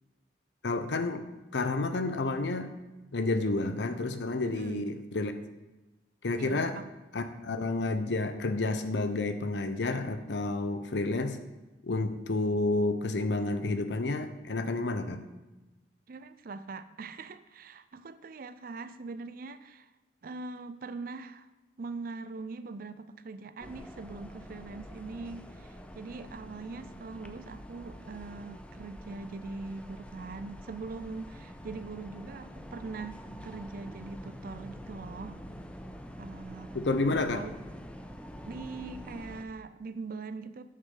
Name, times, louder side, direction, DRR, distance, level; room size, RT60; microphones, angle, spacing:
voice 1, 0.6-1.3 1.5-2.7 3.1-5.3 6.2-6.8 7.1-11.4 11.8-15.2 36.7-37.4, left 2 dB, 85° left, 9 dB, 0.7 m, -30 dB
voice 2, 4.4-4.9 6.4-6.9 16.1-19.9 20.2-21.5 21.8-35.4 36.2-36.8 37.1-37.6 38.4-40.6, right 3 dB, 55° right, 13 dB, 0.5 m, -42 dB
sound 1, 23.6-39.4, equal, 5° left, 0.5 m, -46 dB
9.0 x 6.5 x 3.9 m, 1.1 s
head